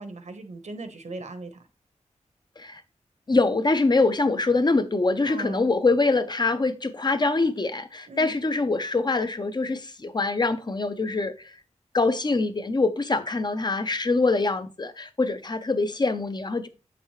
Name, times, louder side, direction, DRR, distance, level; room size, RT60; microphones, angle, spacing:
voice 1, 0.0-1.6 5.2-5.7 8.1-8.4, right 2 dB, 70° right, 1.2 m, -38 dB
voice 2, 3.3-11.3 11.9-16.7, left 3 dB, 35° left, 0.8 m, -24 dB
7.7 x 6.1 x 3.2 m
wide cardioid pair, 80°, 13 cm